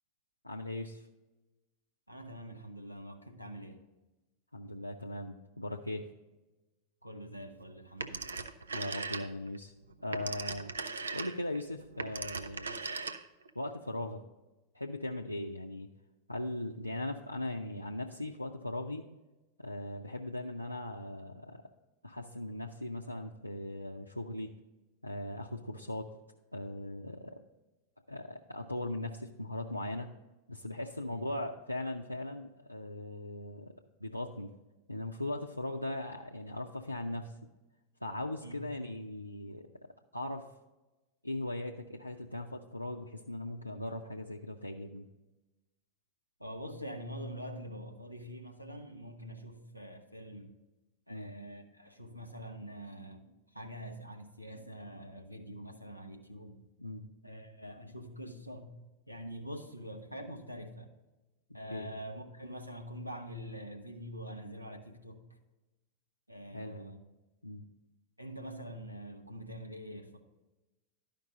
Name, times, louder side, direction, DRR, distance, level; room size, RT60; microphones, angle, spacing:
voice 1, 0.4-1.1 4.5-6.1 8.7-9.7 10.0-10.7 11.1-12.8 13.6-14.2 14.7-15.9 16.3-19.0 19.6-21.6 22.0-24.5 25.0-26.1 26.5-27.4 28.1-30.1 30.5-33.7 34.0-34.5 34.9-37.3 38.0-39.7 40.1-40.5 41.2-45.1 51.1-51.3 56.8-57.1 61.7-61.9 66.5-66.9 67.4-67.7, left 1 dB, 85° left, 0 dB, 0.5 m, -39 dB
voice 2, 2.1-3.8 7.0-8.5 15.3-15.4 31.1-31.2 38.4-38.6 46.4-50.6 51.1-56.6 57.2-58.7 59.1-60.9 61.5-65.2 66.3-67.0 68.2-70.2, equal, 90° right, 3 dB, 1.0 m, -45 dB
Telephone, 8.0-9.6 9.9-13.5, right 4 dB, 75° right, 0.5 m, -39 dB
12.0 x 5.2 x 3.8 m, 1.1 s
figure-of-eight pair, 90°, 0 cm